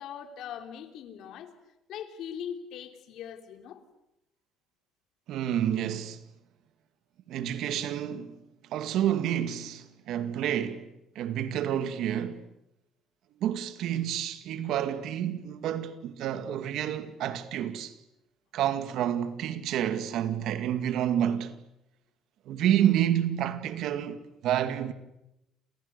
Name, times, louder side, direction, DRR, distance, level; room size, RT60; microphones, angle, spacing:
voice 1, 0.0-1.5 1.9-3.8, left 8 dB, 70° left, 3.2 m, -40 dB
voice 2, 5.3-6.2 7.3-8.4 8.7-10.8 11.2-12.4 13.4-17.9 18.5-21.5 22.5-24.9, right 10 dB, 70° right, 2.2 m, -29 dB
29.5 x 28.5 x 6.9 m
cardioid pair, 110°, 0 cm